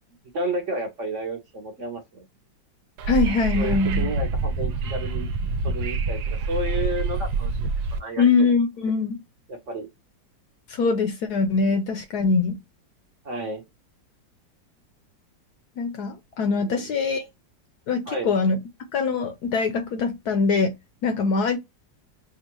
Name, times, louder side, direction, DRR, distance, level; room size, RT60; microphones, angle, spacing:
voice 1, 0.3-2.3 3.5-5.3 5.6-7.5 8.0-8.2 9.5-9.9 13.2-13.6 16.6-16.9 18.1-18.3, right 1 dB, 55° right, 0.9 m, -31 dB
Wind / Subway metro underground, 3.0-8.0, right 3 dB, 85° right, 1.3 m, -26 dB
voice 2, 3.1-4.1 8.2-9.2 10.7-12.6 15.8-17.3 17.9-18.6 18.9-20.7 21.0-21.6, left 4 dB, 70° left, 1.0 m, -23 dB
5.2 x 2.4 x 3.0 m
omnidirectional pair, 2.0 m